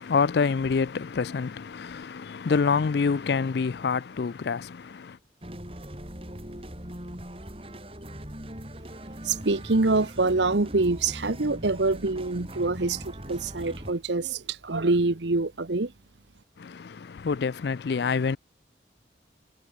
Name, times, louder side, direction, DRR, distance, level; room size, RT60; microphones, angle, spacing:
voice 1, 0.0-5.2 16.6-18.4, left 5 dB, 65° left, 0.4 m, -27 dB
sound 1, 5.4-13.9, equal, 30° right, 5.9 m, -40 dB
voice 2, 9.2-15.9, right 3 dB, 75° right, 1.1 m, -25 dB
head